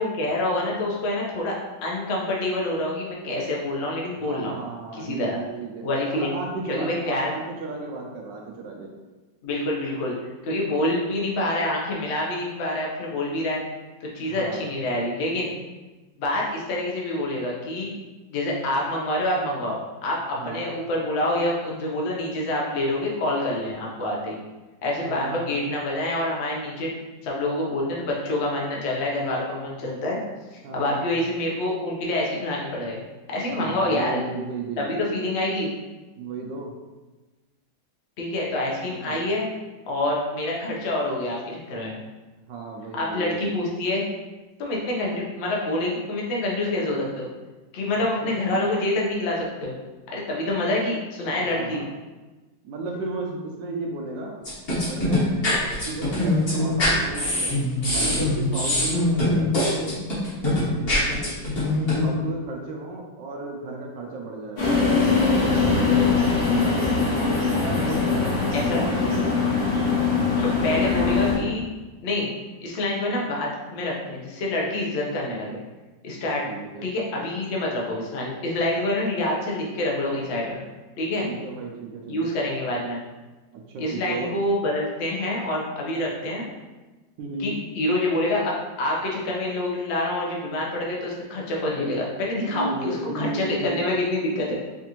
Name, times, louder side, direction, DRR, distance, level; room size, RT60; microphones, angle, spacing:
voice 1, 0.0-1.5 1.8-4.5 4.9-5.4 5.8-6.3 6.7-7.3 9.4-10.2 10.4-13.6 14.1-15.5 16.2-17.9 18.3-19.8 20.0-24.4 24.8-26.9 27.2-30.2 30.7-33.0 33.3-34.2 34.8-35.7 38.2-39.5 39.9-41.9 43.0-44.0 44.6-47.3 47.7-49.7 50.1-51.8 68.5-68.8 70.6-71.6 72.0-72.3 72.6-75.6 76.0-76.5 76.8-80.6 81.0-81.3 82.1-83.0 83.8-86.5 87.4-94.5, left 1 dB, 65° left, -3 dB, 0.6 m, -26 dB
voice 2, 4.2-8.9 14.2-14.6 20.4-20.7 25.0-25.4 30.6-31.0 33.5-35.2 36.2-36.7 38.9-39.2 42.5-43.6 47.9-48.4 51.4-51.9 52.6-54.4 54.9-55.3 55.9-59.9 60.8-61.3 62.0-66.9 67.6-68.4 68.8-69.4 76.4-76.9 81.2-82.3 83.7-84.3 87.2-87.6 92.5-93.9, right 3 dB, 75° right, 0 dB, 1.1 m, -34 dB
sound 1, 54.4-62.1, left 1 dB, 40° left, 1.0 m, -23 dB
sound 2, 64.6-71.4, left 4 dB, 80° left, 2.2 m, -22 dB
5.0 x 2.5 x 2.9 m, 1.2 s
omnidirectional pair, 2.2 m